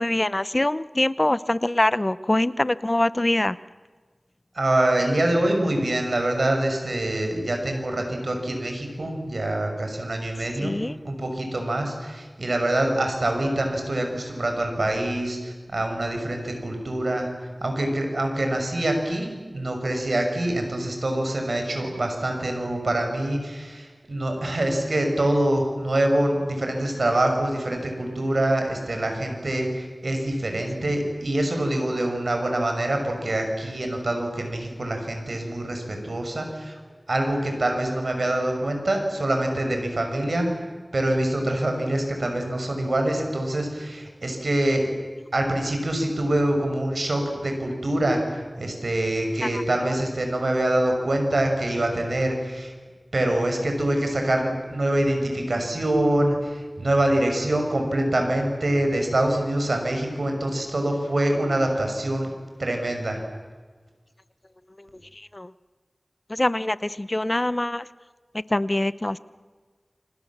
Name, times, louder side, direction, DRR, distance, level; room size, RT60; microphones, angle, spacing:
voice 1, 0.0-3.6 10.6-11.0 65.2-65.5 66.3-67.9 68.5-69.2, left 1 dB, 35° left, 16 dB, 0.8 m, -24 dB
voice 2, 4.5-10.7 11.0-17.3 17.6-36.8 37.1-40.6 40.9-44.9 45.3-52.7 53.1-62.3 62.6-63.2, right 1 dB, 80° right, 4 dB, 6.2 m, -25 dB
29.0 x 26.0 x 7.4 m, 1.4 s
wide cardioid pair, 45°, 0 cm